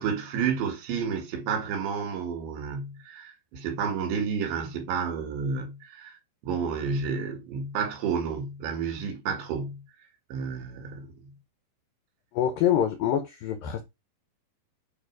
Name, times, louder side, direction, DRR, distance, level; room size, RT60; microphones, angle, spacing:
voice 1, 0.0-6.2 6.4-9.8 10.3-11.3, right 6 dB, 85° right, 4.4 m, -31 dB
voice 2, 12.3-13.8, left 10 dB, 85° left, 2.0 m, -25 dB
8.9 x 3.2 x 4.7 m
omnidirectional pair, 5.1 m